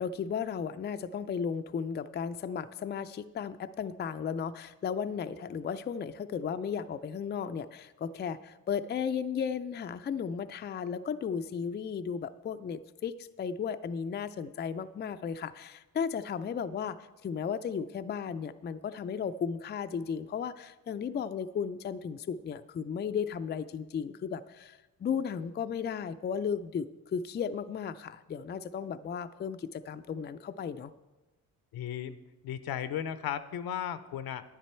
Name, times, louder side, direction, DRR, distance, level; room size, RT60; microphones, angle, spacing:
voice 1, 0.0-30.9, left 7 dB, 30° left, 10 dB, 0.4 m, -35 dB
voice 2, 31.7-32.2 32.4-34.4, left 10 dB, 75° left, 13 dB, 0.7 m, -35 dB
10.0 x 9.5 x 4.4 m, 1.1 s
cardioid pair, 75°, 36 cm